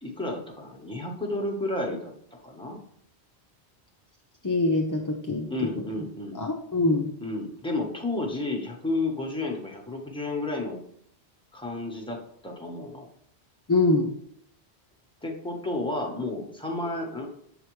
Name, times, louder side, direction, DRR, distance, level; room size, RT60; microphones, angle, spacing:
voice 1, 0.0-2.1 2.4-2.8 5.5-6.4 7.2-10.8 11.5-13.1 15.2-17.4, left 2 dB, 5° left, 1 dB, 1.0 m, -31 dB
voice 2, 4.4-5.7 6.4-7.1 13.7-14.1, left 2 dB, 25° left, 0 dB, 0.4 m, -24 dB
7.0 x 4.8 x 3.1 m, 0.69 s
omnidirectional pair, 1.1 m